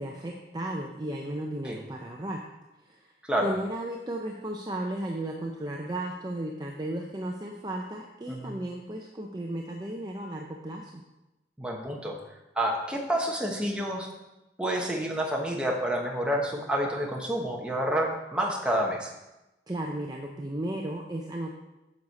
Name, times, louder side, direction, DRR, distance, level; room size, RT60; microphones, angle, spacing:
voice 1, 0.0-2.4 2.9-3.1 3.4-11.0 19.7-21.6, right 1 dB, 20° right, 1 dB, 0.6 m, -34 dB
voice 2, 11.6-12.2 12.5-14.1 14.6-19.1, right 1 dB, 5° right, -1 dB, 1.1 m, -29 dB
9.6 x 6.4 x 4.2 m, 0.99 s
head